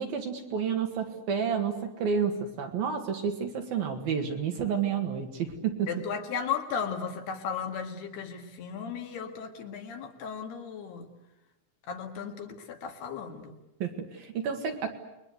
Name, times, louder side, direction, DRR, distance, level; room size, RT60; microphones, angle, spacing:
voice 1, 0.0-5.9 13.8-14.9, right 7 dB, 60° right, 4 dB, 3.2 m, -30 dB
voice 2, 5.9-11.1 11.9-13.6, left 6 dB, 60° left, 4 dB, 3.7 m, -35 dB
30.0 x 22.0 x 8.0 m, 0.93 s
omnidirectional pair, 5.5 m